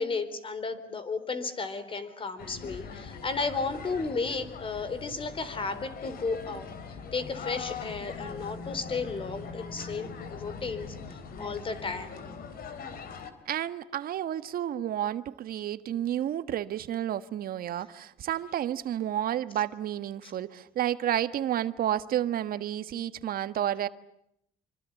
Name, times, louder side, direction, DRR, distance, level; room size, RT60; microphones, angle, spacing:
voice 1, 0.0-12.1 20.2-20.3, left 4 dB, 30° left, 3.9 m, -34 dB
sound 1, 2.4-13.3, left 5 dB, 60° left, 3.8 m, -41 dB
voice 2, 13.4-23.9, right 11 dB, 60° right, 1.5 m, -31 dB
27.0 x 25.0 x 8.4 m
cardioid pair, 110°, 17 cm